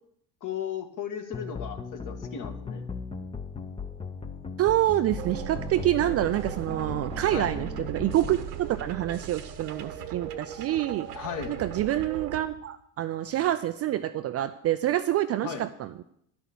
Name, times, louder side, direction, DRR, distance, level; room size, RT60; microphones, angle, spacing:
voice 1, 0.4-2.8 7.3-7.5 11.1-11.6 15.4-15.6, left 8 dB, 40° left, 6 dB, 1.6 m, -35 dB
sound 1, 1.3-8.3, left 5 dB, 10° left, 0.7 m, -38 dB
voice 2, 4.6-11.1 11.5-16.0, right 13 dB, 35° right, 11 dB, 0.4 m, -27 dB
sound 2, 5.2-12.4, right 8 dB, 80° right, 1.2 m, -38 dB
11.0 x 6.1 x 7.0 m, 0.72 s
hypercardioid pair, 80°, 47 cm